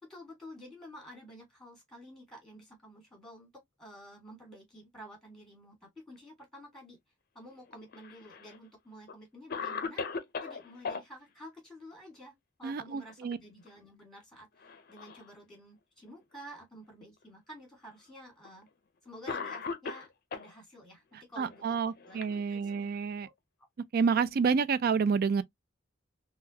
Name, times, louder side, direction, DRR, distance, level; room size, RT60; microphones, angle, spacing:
voice 1, 0.0-7.0 7.3-10.0 10.4-18.7 19.0-22.2 22.5-22.7 23.2-23.3, equal, ahead, 1.5 m, -51 dB
Cough, 7.7-8.6 9.1-9.2 9.5-11.0 12.9-13.3 13.7-13.8 14.6-15.3 16.1-16.2 17.2-17.3 18.4-18.6 19.3-20.5 21.5-22.9, left 5 dB, 45° left, 0.5 m, -39 dB
voice 2, 12.6-13.4 21.4-23.3 23.9-25.4, right 5 dB, 45° right, 0.3 m, -29 dB
3.6 x 2.2 x 2.7 m
head